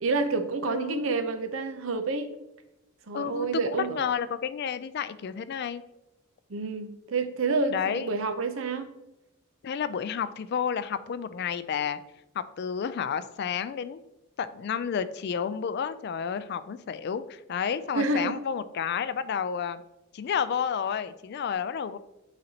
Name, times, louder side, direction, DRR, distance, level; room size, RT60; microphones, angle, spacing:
voice 1, 0.0-2.3 3.1-4.0 6.5-8.9 17.9-18.3, right 3 dB, 65° right, 9 dB, 0.6 m, -28 dB
voice 2, 0.7-1.2 3.1-5.8 7.7-8.1 9.6-12.0 12.6-14.0 14.4-19.8 20.1-22.0, left 7 dB, 50° left, 14 dB, 0.3 m, -31 dB
9.6 x 4.0 x 2.8 m, 0.91 s
head